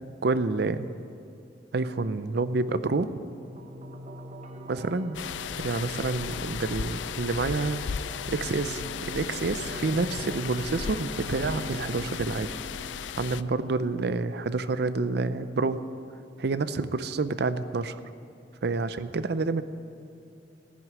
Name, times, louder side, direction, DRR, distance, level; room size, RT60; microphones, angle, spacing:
voice 1, 0.2-0.9 1.7-3.1 4.7-5.2 5.6-7.8 8.3-12.5 13.2-15.8 16.4-18.0 18.6-19.6, right 3 dB, 60° right, 13 dB, 0.5 m, -28 dB
sound 1, 3.1-14.1, right 1 dB, 40° right, 1.0 m, -43 dB
sound 2, 5.1-13.4, left 7 dB, 80° left, 0.4 m, -35 dB
15.0 x 6.4 x 9.5 m, 2.5 s
head